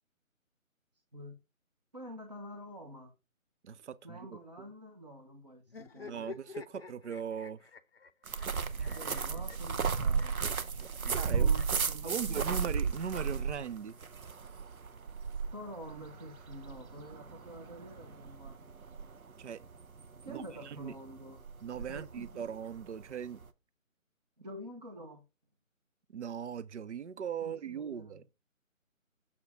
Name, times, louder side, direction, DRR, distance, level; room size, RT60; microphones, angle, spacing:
voice 1, 1.9-3.1 4.0-6.4 8.9-10.5 11.1-12.6 15.5-18.6 20.2-21.4 21.9-22.5 24.4-25.2 27.4-28.2, equal, 30° right, 0.8 m, -47 dB
voice 2, 3.6-4.4 6.1-7.7 8.9-9.0 10.8-11.5 12.0-14.0 19.4-19.6 20.3-20.9 21.6-23.4 26.1-28.2, right 7 dB, 60° right, 0.5 m, -39 dB
sound 1, 5.7-11.9 12.8-14.0, left 4 dB, 45° left, 0.5 m, -50 dB
sound 2, 8.3-23.5, right 5 dB, 85° right, 0.9 m, -34 dB
7.1 x 4.4 x 4.7 m
figure-of-eight pair, 165°, 41 cm